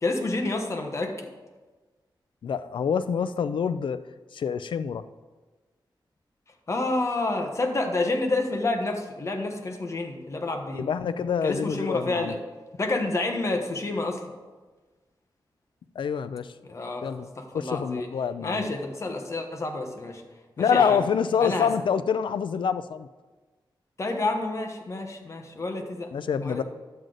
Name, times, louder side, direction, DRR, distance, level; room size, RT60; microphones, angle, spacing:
voice 1, 0.0-1.3 6.7-10.8 11.4-12.4 12.8-14.2 16.6-17.1 17.4-18.1 18.4-20.2 20.6-21.0 21.4-21.7 24.0-26.1 26.4-26.6, left 2 dB, 35° left, 3 dB, 1.1 m, -29 dB
voice 2, 2.4-4.0 4.3-5.0 10.7-12.3 16.0-16.5 17.0-17.3 17.5-18.7 20.6-23.1 26.1-26.6, left 7 dB, 80° left, 13 dB, 0.4 m, -26 dB
10.5 x 7.7 x 3.9 m, 1.3 s
wide cardioid pair, 140°, 8 cm